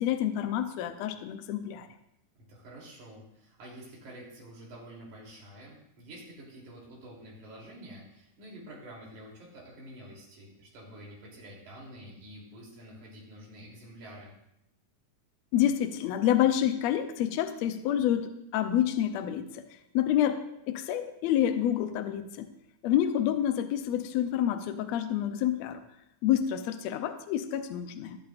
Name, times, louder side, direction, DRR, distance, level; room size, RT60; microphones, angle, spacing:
voice 1, 0.0-1.9 15.5-19.6 19.9-22.5 22.8-25.8 26.2-28.2, left 11 dB, 75° left, 7 dB, 1.7 m, -28 dB
voice 2, 2.4-14.3, right 1 dB, 75° right, -4 dB, 4.7 m, -48 dB
21.0 x 8.5 x 2.5 m, 0.80 s
omnidirectional pair, 3.5 m